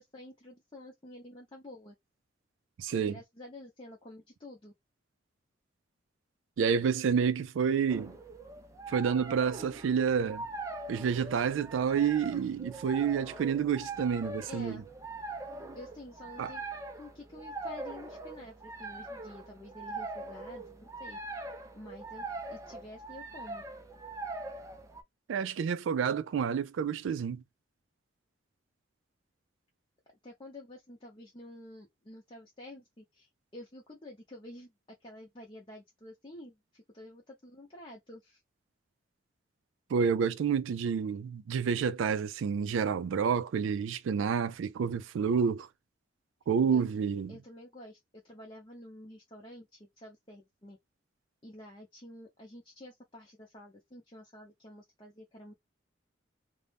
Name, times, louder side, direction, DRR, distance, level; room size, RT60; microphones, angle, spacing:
voice 1, 0.0-1.9 2.9-4.7 14.5-14.8 15.7-16.6 17.0-21.2 21.7-23.6 30.2-34.7 35.0-38.4 46.7-46.9 47.3-50.8 51.4-55.6, left 1 dB, 25° left, 0.6 m, -49 dB
voice 2, 2.8-3.1 6.6-8.1 8.9-10.5 10.9-14.8 16.4-16.5 25.3-27.4 39.9-45.7 46.5-47.3, right 6 dB, 85° right, 0.3 m, -29 dB
sound 1, 7.9-25.0, right 2 dB, 15° right, 0.4 m, -42 dB
2.5 x 2.1 x 3.3 m
head